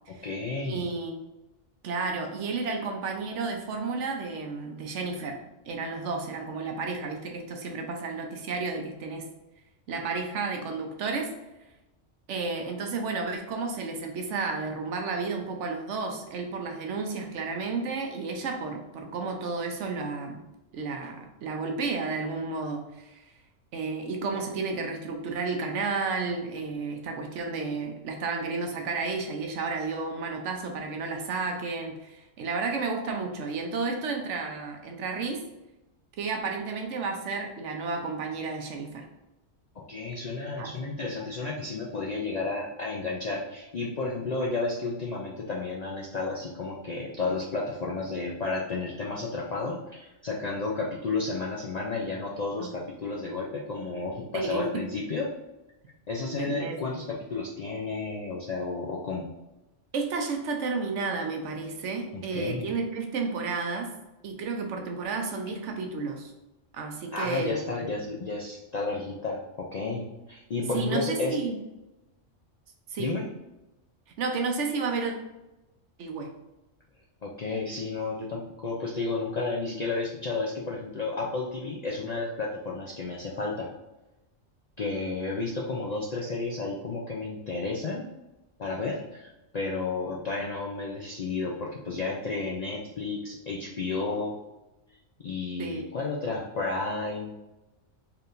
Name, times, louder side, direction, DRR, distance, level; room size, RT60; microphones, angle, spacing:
voice 1, 0.1-0.8 39.8-55.3 56.1-59.3 62.1-62.7 67.1-71.4 73.0-73.3 77.2-83.7 84.8-88.0 88.6-94.4 95.2-97.3, left 3 dB, 60° left, -3 dB, 0.4 m, -32 dB
voice 2, 0.6-1.1 1.8-5.4 5.7-9.3 9.9-11.3 12.3-20.4 20.7-23.2 23.7-35.4 36.2-39.1 40.6-40.8 52.6-52.7 54.3-54.8 56.3-56.8 59.9-63.9 64.2-66.3 66.7-67.6 70.7-71.6 72.9-73.1 74.2-75.1 76.0-76.3 95.6-95.9, right 4 dB, 70° right, 3 dB, 1.0 m, -32 dB
4.4 x 3.4 x 2.5 m, 0.98 s
omnidirectional pair, 1.3 m